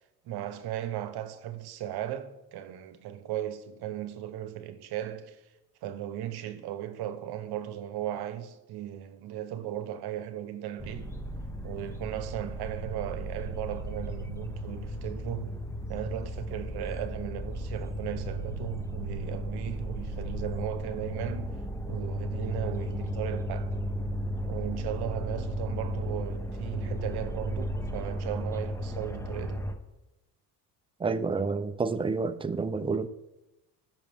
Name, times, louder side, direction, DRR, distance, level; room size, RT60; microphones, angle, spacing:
voice 1, 0.2-5.4 5.8-11.1 11.6-15.6 15.9-21.5 21.9-23.8 24.5-29.7, right 11 dB, 70° right, 1.1 m, -37 dB
sound 1, 10.8-29.7, equal, 5° left, 0.9 m, -35 dB
voice 2, 31.0-33.1, right 4 dB, 15° right, 0.5 m, -29 dB
18.5 x 6.2 x 3.6 m
cardioid pair, 115°, 39 cm